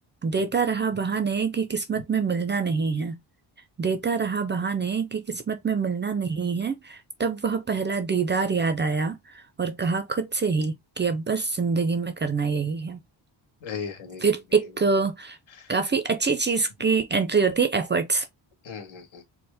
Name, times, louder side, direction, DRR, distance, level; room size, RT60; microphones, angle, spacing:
voice 1, 0.2-3.2 3.8-13.0 14.2-15.4 15.7-18.3, right 5 dB, 25° right, 0.4 m, -25 dB
voice 2, 13.6-14.9 15.5-15.7 18.6-19.3, left 6 dB, 85° left, 1.6 m, -38 dB
4.3 x 2.0 x 3.3 m
wide cardioid pair, 150°, 46 cm